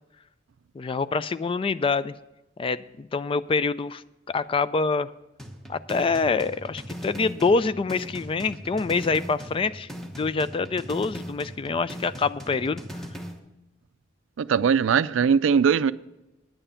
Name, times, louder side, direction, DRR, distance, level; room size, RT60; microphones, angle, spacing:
voice 1, 0.7-2.1 2.6-4.0 4.3-5.1 5.7-9.9 10.2-12.8, left 4 dB, 30° left, 0.3 m, -25 dB
sound 1, 5.4-13.4, equal, ahead, 1.0 m, -39 dB
voice 2, 14.4-15.9, right 6 dB, 85° right, 0.4 m, -20 dB
10.0 x 8.9 x 5.6 m
head